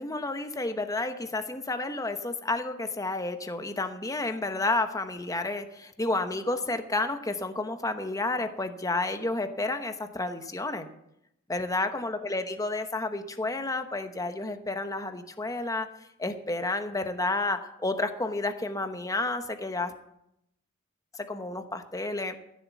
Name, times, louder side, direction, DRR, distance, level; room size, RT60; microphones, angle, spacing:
voice 1, 0.0-10.9 11.5-15.9 16.2-19.9 21.2-22.4, left 2 dB, 15° left, 8 dB, 1.0 m, -31 dB
14.5 x 7.4 x 7.2 m, 0.80 s
head